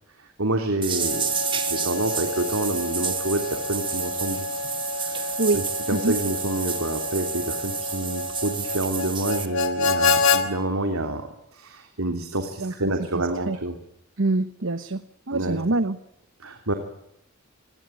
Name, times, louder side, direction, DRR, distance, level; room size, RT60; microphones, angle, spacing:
voice 1, 0.2-4.5 5.1-13.8 15.3-15.6 16.4-16.7, right 2 dB, 90° right, 5 dB, 3.4 m, -28 dB
sound 1, 0.8-9.5, right 7 dB, 25° right, 2.4 m, -30 dB
Harmonica, 0.9-10.4, left 4 dB, 70° left, 3.6 m, -28 dB
voice 2, 14.2-15.0 15.3-16.0, right 2 dB, 65° right, 13 dB, 1.1 m, -24 dB
28.0 x 21.5 x 9.3 m, 0.77 s
head